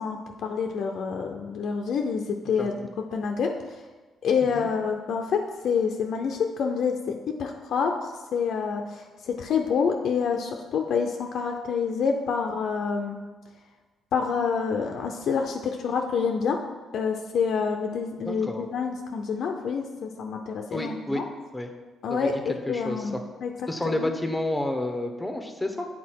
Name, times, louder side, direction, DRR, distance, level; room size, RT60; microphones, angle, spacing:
voice 1, 0.0-2.7 3.1-3.8 4.2-7.1 7.4-13.2 14.1-16.6 16.9-21.2 22.0-23.5 23.8-24.1, left 6 dB, 70° left, 3 dB, 0.5 m, -27 dB
voice 2, 18.2-18.6 20.7-21.2 21.5-21.7 22.1-22.3 22.7-23.2 23.7-25.9, left 1 dB, 10° left, 5 dB, 0.9 m, -30 dB
8.3 x 4.0 x 4.6 m, 1.3 s
cardioid pair, 90°, 0 cm